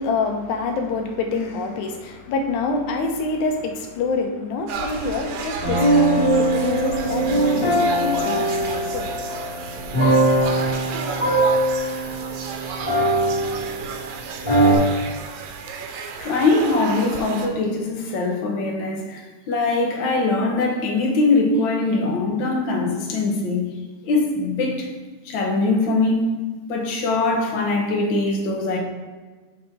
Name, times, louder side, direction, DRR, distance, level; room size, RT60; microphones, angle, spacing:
voice 1, 0.0-9.1, left 3 dB, 90° left, 4 dB, 2.3 m, -26 dB
sound 1, 4.7-17.5, right 5 dB, 80° right, 2.0 m, -33 dB
sound 2, 5.6-14.0 14.4-14.7, right 1 dB, 30° left, 2.3 m, -21 dB
voice 2, 16.2-23.7 24.0-24.9 25.2-26.3 26.7-28.8, left 3 dB, 55° left, 0 dB, 1.4 m, -22 dB
7.4 x 4.2 x 4.5 m, 1.3 s
omnidirectional pair, 3.4 m